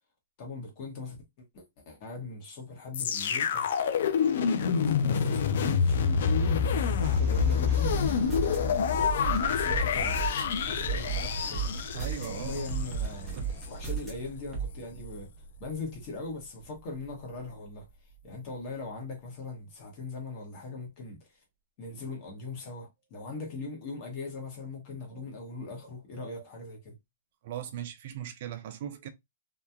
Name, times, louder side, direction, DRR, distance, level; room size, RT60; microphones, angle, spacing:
voice 1, 0.4-3.7 3.9-4.4 4.7-9.1 9.4-10.2 10.5-11.7 12.3-13.4 13.7-15.3 15.6-17.9 18.2-21.4 21.8-27.0, left 3 dB, 35° left, 1.0 m, -40 dB
sound 1, 2.9-13.0 13.6-13.7, left 6 dB, 65° left, 0.4 m, -27 dB
sound 2, 6.9-18.2, right 2 dB, 30° right, 1.1 m, -40 dB
sound 3, 7.4-8.6 9.0-10.4 10.8-12.3 12.7-14.1 14.5-14.7, right 6 dB, 5° right, 0.9 m, -33 dB
voice 2, 11.9-13.0 13.3-13.7 25.1-25.2 26.2-26.4 27.4-29.1, right 10 dB, 50° right, 0.5 m, -40 dB
2.8 x 2.3 x 2.3 m
hypercardioid pair, 160°, 0 cm